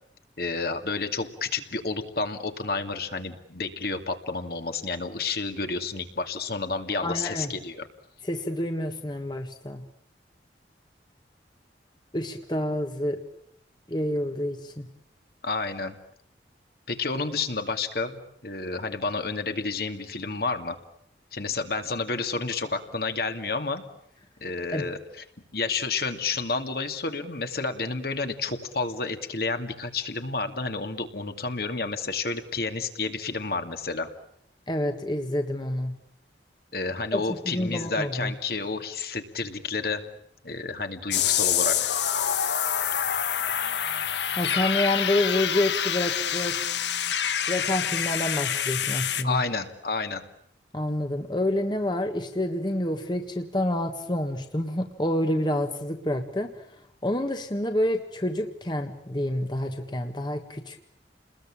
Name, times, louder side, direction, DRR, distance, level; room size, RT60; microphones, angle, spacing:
voice 1, 0.4-7.9 15.4-15.9 16.9-20.8 21.3-23.8 24.4-25.2 25.5-34.1 36.7-40.0 40.4-41.9 49.2-50.2, left 4 dB, 55° left, 6 dB, 2.4 m, -30 dB
voice 2, 7.0-7.5 8.2-9.8 12.1-13.2 13.9-14.9 24.7-24.9 34.7-35.9 37.1-38.3 44.4-46.6 47.5-49.4 50.7-56.5 57.0-60.9, left 1 dB, 25° left, 5 dB, 1.6 m, -28 dB
sound 1, 41.1-49.2, left 9 dB, 75° left, 1.4 m, -26 dB
30.0 x 21.0 x 8.7 m, 0.72 s
head